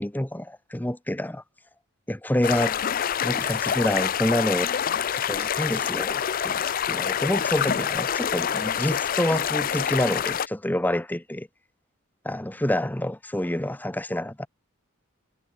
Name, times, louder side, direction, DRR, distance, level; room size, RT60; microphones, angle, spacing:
voice 1, 0.0-1.4 2.1-4.7 5.1-6.6 6.9-11.5 12.2-14.5, left 1 dB, 10° left, 0.8 m, -27 dB
sound 1, 2.4-10.5, left 8 dB, 40° left, 0.4 m, -26 dB
head